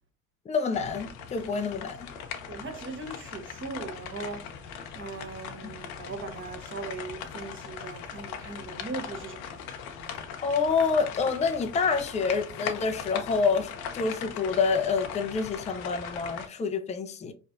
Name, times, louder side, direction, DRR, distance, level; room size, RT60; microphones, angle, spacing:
voice 1, 0.5-2.1 5.6-5.7 10.4-13.7 13.9-17.3, left 5 dB, 15° left, 0.5 m, -27 dB
sound 1, 0.7-16.5, left 7 dB, 75° left, 0.8 m, -40 dB
voice 2, 2.5-4.4 4.9-9.7, right 3 dB, 25° right, 1.1 m, -39 dB
4.2 x 3.0 x 2.5 m
hypercardioid pair, 65°, 43 cm